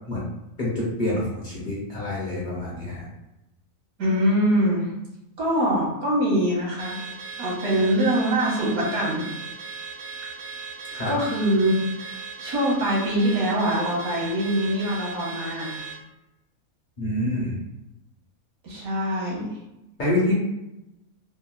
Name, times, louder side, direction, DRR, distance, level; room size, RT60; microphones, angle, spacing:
voice 1, 0.6-3.1 10.9-11.1 17.0-17.6 20.0-20.4, left 1 dB, 45° left, -6 dB, 0.6 m, -26 dB
voice 2, 4.0-4.9 5.4-7.0 7.4-9.2 11.1-15.8 18.6-19.6, equal, 80° right, -4 dB, 1.5 m, -23 dB
Car / Alarm, 6.8-16.0, right 5 dB, 60° right, 0.7 m, -38 dB
3.5 x 2.2 x 2.3 m, 0.90 s
omnidirectional pair, 1.5 m